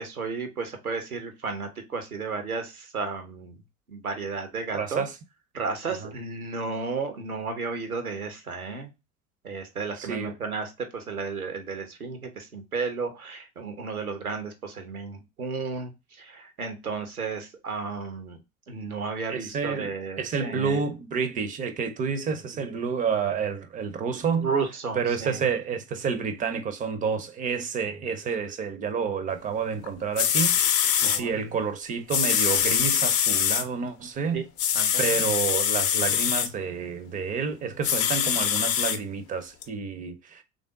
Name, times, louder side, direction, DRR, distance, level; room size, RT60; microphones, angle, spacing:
voice 1, 0.0-3.6 3.9-5.0 5.5-8.9 9.4-15.9 16.2-18.4 18.7-20.8 24.4-25.4 31.0-31.4 34.3-34.4 34.7-35.1, right 4 dB, 85° right, 0.8 m, -33 dB
voice 2, 4.7-5.2 6.0-6.1 10.0-10.3 19.3-24.5 25.0-30.6 31.0-34.4 35.0-40.4, right 6 dB, 20° right, 0.5 m, -29 dB
sound 1, 29.9-30.0 30.2-31.2 32.1-33.6 34.6-36.5 37.8-39.0 39.6-39.7, left 9 dB, 35° left, 0.5 m, -23 dB
3.3 x 2.6 x 3.6 m
figure-of-eight pair, 70°, 43 cm